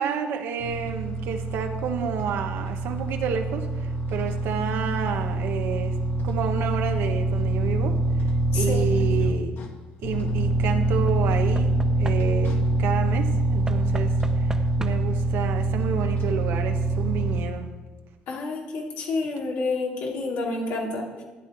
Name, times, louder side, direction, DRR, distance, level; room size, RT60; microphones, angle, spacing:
voice 1, 0.0-6.0 6.2-8.0 8.5-9.5 10.0-17.7, right 7 dB, 80° right, 5 dB, 1.2 m, -30 dB
sound 1, 0.6-9.7 10.0-17.4, right 2 dB, 65° left, 1.7 m, -25 dB
voice 2, 8.5-8.9 18.3-21.0, left 3 dB, 85° left, -3 dB, 3.0 m, -29 dB
Knock / Wood, 8.9-9.4 11.1-12.6 13.7-15.2 16.3-16.4 16.6-16.7, right 2 dB, 15° right, 0.9 m, -39 dB
13.0 x 9.6 x 4.6 m, 1.2 s
cardioid pair, 90°, 4 cm